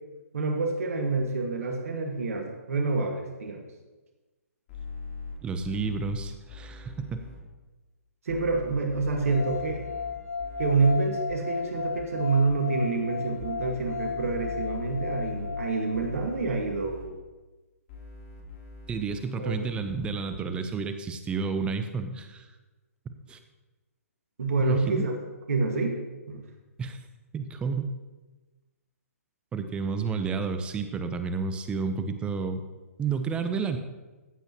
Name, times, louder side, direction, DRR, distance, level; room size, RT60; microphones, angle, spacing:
voice 1, 0.3-3.6 8.2-9.8 10.6-17.1 19.4-19.7 24.4-25.1 25.5-26.0 26.3-26.4, right 3 dB, 65° right, 3 dB, 1.7 m, -27 dB
sound 1, 4.7-7.4 8.3-10.9 11.3-12.0 12.5-15.7 15.9-17.0 17.9-20.3, left 4 dB, 40° left, 3.2 m, -42 dB
voice 2, 5.4-7.2 18.9-22.5 23.3-23.4 24.6-25.0 26.8-27.0 27.3-27.9 29.5-32.6 33.0-33.8, right 5 dB, 10° right, 9 dB, 0.6 m, -30 dB
sound 2, 9.2-16.3, left 5 dB, 70° left, 2.0 m, -35 dB
14.5 x 8.0 x 3.0 m, 1.2 s
hypercardioid pair, 135°, 8 cm